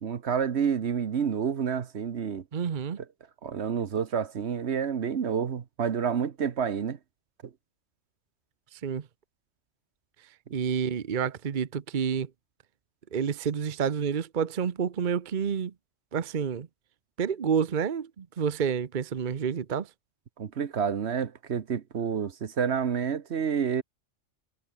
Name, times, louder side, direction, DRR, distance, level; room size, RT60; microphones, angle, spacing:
voice 1, 0.0-2.4 3.4-7.0 20.4-23.8, right 7 dB, 65° right, 1.3 m, -29 dB
voice 2, 2.5-3.0 8.7-9.1 10.5-12.3 13.1-15.7 16.1-16.7 17.2-19.9, right 7 dB, 45° right, 0.9 m, -29 dB
omnidirectional pair, 1.2 m